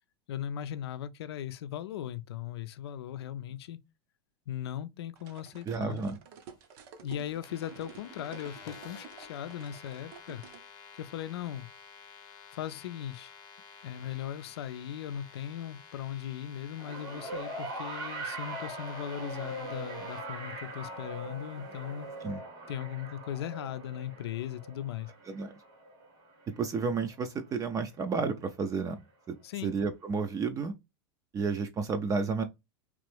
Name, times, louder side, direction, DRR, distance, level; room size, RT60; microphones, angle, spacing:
voice 1, 0.3-3.8 4.5-6.1 7.0-10.4 11.0-11.7 12.5-13.3 13.8-22.1 22.7-25.1 29.4-29.7, left 10 dB, 85° left, 0.4 m, -38 dB
sound 1, 5.2-10.6, right 6 dB, 65° right, 0.9 m, -51 dB
voice 2, 5.7-6.2 22.2-22.4 25.3-25.5 26.6-29.0 29.3-29.4 29.6-30.7 31.3-32.4, right 4 dB, 25° right, 0.5 m, -31 dB
sound 2, 7.4-20.2, left 6 dB, 30° left, 0.8 m, -52 dB
sound 3, 16.8-27.2 28.3-28.4, right 2 dB, 85° right, 1.8 m, -41 dB
3.1 x 2.5 x 3.3 m
supercardioid pair, 120°, 13 cm